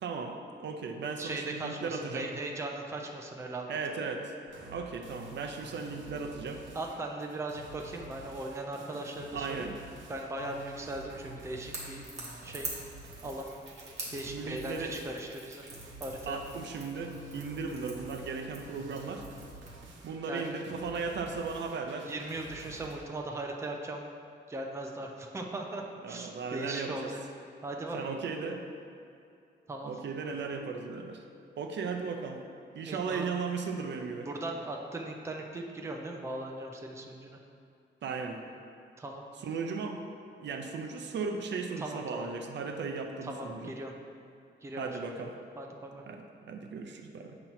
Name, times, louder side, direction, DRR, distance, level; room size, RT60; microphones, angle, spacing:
voice 1, 0.0-2.3 3.7-4.3 4.6-6.6 9.3-9.8 14.3-14.9 16.3-19.3 20.0-22.1 26.0-27.1 27.9-28.6 29.8-31.2 31.6-32.4 32.7-34.3 38.0-38.4 39.4-40.0 40.4-43.7 44.8-45.3 46.1-47.4, right 4 dB, 70° right, 4 dB, 0.6 m, -36 dB
voice 2, 1.2-3.8 6.7-9.7 10.1-12.0 12.4-12.7 13.2-13.5 14.1-15.6 16.0-16.4 20.3-20.6 22.0-24.1 24.5-27.2 27.6-28.2 29.7-29.9 32.9-33.3 34.3-37.4 39.0-39.2 41.8-42.3 43.2-43.9 44.6-44.9 45.6-46.0, right 2 dB, 15° right, 1 dB, 0.5 m, -38 dB
sound 1, 4.5-23.0, right 2 dB, 85° right, 0.9 m, -50 dB
Crackle / Crack, 11.7-19.8, right 2 dB, 35° right, 1.3 m, -46 dB
7.8 x 2.9 x 5.7 m, 2.5 s
wide cardioid pair, 155°, 19 cm